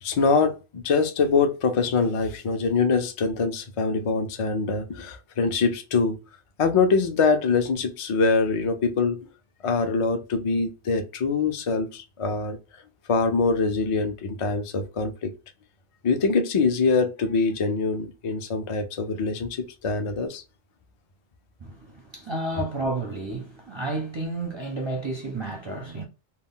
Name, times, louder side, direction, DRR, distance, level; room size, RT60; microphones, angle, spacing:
voice 1, 0.0-6.2 6.6-9.2 9.6-12.6 13.1-15.3 16.0-20.4, left 4 dB, 55° left, 0.3 m, -24 dB
voice 2, 21.6-26.0, right 2 dB, 35° right, 0.4 m, -31 dB
2.2 x 2.2 x 3.6 m
omnidirectional pair, 1.1 m